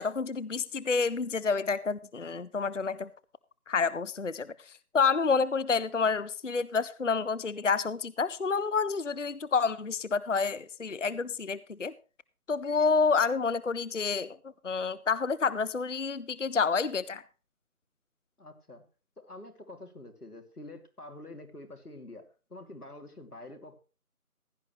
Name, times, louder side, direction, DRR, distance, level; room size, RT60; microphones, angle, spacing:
voice 1, 0.0-3.1 3.7-4.5 4.9-11.9 12.5-14.4 14.6-17.2, left 5 dB, 55° left, 0.5 m, -29 dB
voice 2, 18.4-18.8 19.2-23.8, left 2 dB, 85° left, 3.0 m, -47 dB
16.0 x 10.5 x 3.1 m
figure-of-eight pair, 175°, 44 cm